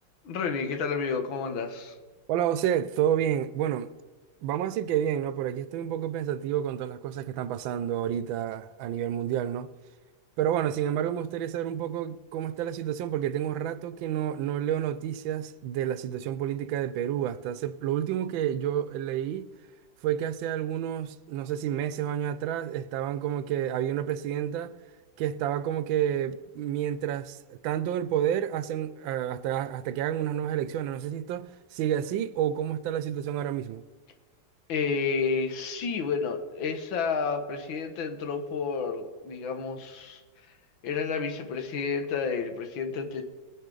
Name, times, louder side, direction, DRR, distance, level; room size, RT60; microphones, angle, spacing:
voice 1, 0.3-2.0 34.7-40.2 40.8-43.2, left 5 dB, 85° left, 1.9 m, -30 dB
voice 2, 2.3-3.9 4.4-9.7 10.4-19.5 20.0-24.7 25.2-27.4 27.6-33.8, right 10 dB, 90° right, 1.4 m, -29 dB
20.5 x 9.3 x 3.9 m
omnidirectional pair, 2.1 m